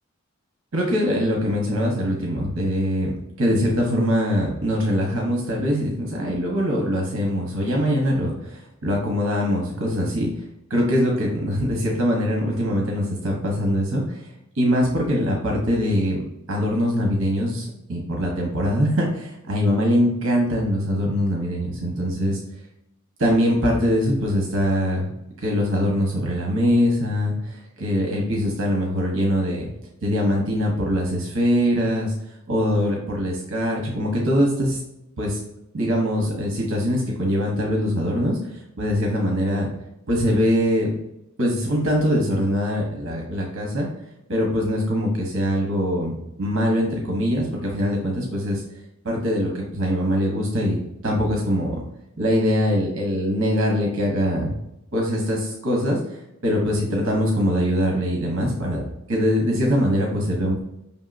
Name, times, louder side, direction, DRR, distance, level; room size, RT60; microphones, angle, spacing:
voice 1, 0.7-10.3 10.7-14.3 14.5-16.2 16.5-22.4 23.2-25.1 25.4-29.7 30.0-32.1 32.5-34.8 35.2-35.4 35.7-39.7 40.1-40.9 41.4-43.9 44.3-46.1 46.4-48.6 49.0-51.8 52.2-54.5 54.9-60.6, equal, 60° right, -1 dB, 1.0 m, -22 dB
5.5 x 3.5 x 2.5 m, 0.83 s
head